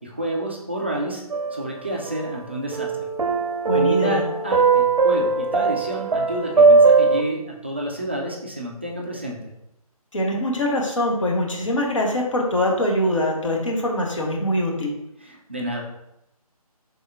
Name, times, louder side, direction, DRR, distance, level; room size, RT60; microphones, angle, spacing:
voice 1, 0.0-1.2 1.5-3.1 3.7-9.4 15.2-15.8, right 1 dB, 20° right, -2 dB, 0.4 m, -29 dB
sound 1, 1.3-2.4 2.7-7.2, right 4 dB, 70° right, 0.5 m, -19 dB
voice 2, 3.7-4.2 10.1-14.9, left 1 dB, 55° left, 0 dB, 1.1 m, -23 dB
4.0 x 3.6 x 3.5 m, 0.86 s
figure-of-eight pair, 155°, 20 cm